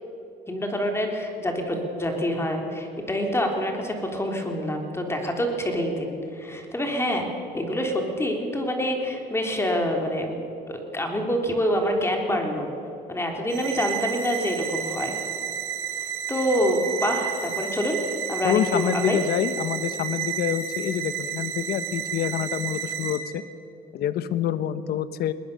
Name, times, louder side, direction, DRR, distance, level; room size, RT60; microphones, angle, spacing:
voice 1, 0.5-7.3 7.5-10.4 10.7-12.7 13.1-15.2 16.3-18.0 18.3-19.2, equal, 15° left, 2 dB, 3.5 m, -26 dB
sound 1, 13.5-23.2, right 9 dB, 85° right, 3.6 m, -31 dB
voice 2, 18.4-23.4 23.9-25.3, left 10 dB, 70° left, 13 dB, 1.1 m, -27 dB
21.0 x 19.5 x 6.9 m, 2.8 s
cardioid pair, 110°, 17 cm